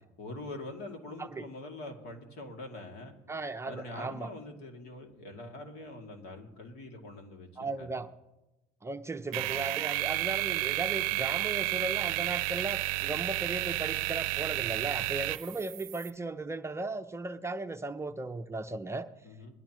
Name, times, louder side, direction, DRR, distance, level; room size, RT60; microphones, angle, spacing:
voice 1, 0.2-3.1 3.6-7.9 19.2-19.5, left 2 dB, 65° left, 2 dB, 2.7 m, -44 dB
voice 2, 3.3-4.3 7.6-8.1 8.8-19.1, right 3 dB, 15° right, 7 dB, 0.6 m, -36 dB
sound 1, 9.3-16.1, right 20 dB, 85° right, 0.5 m, -31 dB
21.0 x 11.5 x 3.1 m, 1.0 s
supercardioid pair, 95°, 18 cm